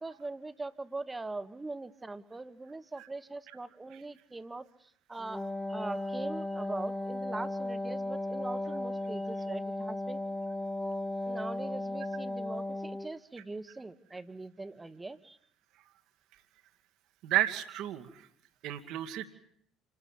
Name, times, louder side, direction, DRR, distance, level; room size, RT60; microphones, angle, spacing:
voice 1, 0.0-4.7 5.1-5.4 5.7-10.2 11.3-15.4, right 3 dB, 15° right, 12 dB, 1.5 m, -41 dB
Wind instrument woodwind instrument, 5.2-13.2, left 1 dB, 5° left, 1.2 m, -36 dB
voice 2, 17.2-18.2 18.6-19.3, right 13 dB, 60° right, 10 dB, 1.9 m, -32 dB
28.0 x 12.5 x 9.9 m, 0.70 s
figure-of-eight pair, 55°, 0 cm